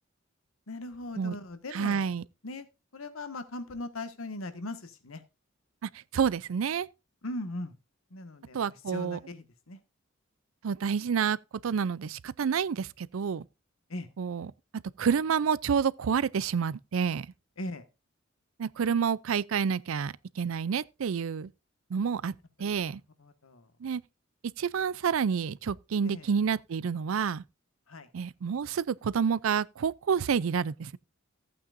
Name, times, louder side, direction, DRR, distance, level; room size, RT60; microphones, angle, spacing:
voice 1, 0.7-2.1 2.4-2.7 2.9-5.2 7.2-7.8 8.1-9.8 13.9-14.1 17.6-17.8 22.8-23.7 26.0-26.3 27.9-28.1, left 2 dB, 85° left, 1.5 m, -39 dB
voice 2, 1.7-2.2 5.8-6.9 8.5-9.2 10.6-11.4 11.6-13.4 14.2-14.5 15.0-17.3 18.6-21.5 21.9-22.3 22.6-23.0 23.8-24.0 24.6-27.4 28.1-31.0, right 6 dB, 75° right, 0.4 m, -29 dB
14.5 x 8.7 x 2.5 m
head